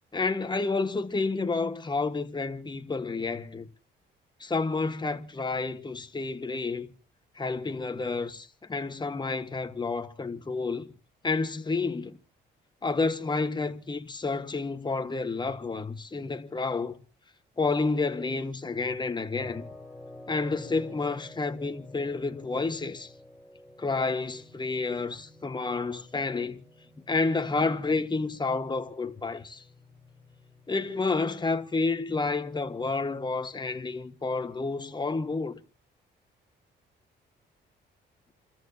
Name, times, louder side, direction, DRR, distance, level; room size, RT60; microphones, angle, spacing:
voice 1, 0.1-3.7 4.4-6.9 7.4-10.9 11.2-12.2 12.8-17.0 17.6-19.7 20.3-23.1 23.8-26.6 27.1-29.6 30.7-35.6, left 3 dB, 20° left, 1.4 m, -30 dB
sound 1, 19.4-32.4, left 2 dB, ahead, 5.0 m, -51 dB
29.0 x 14.0 x 2.8 m
cardioid pair, 90°, 20 cm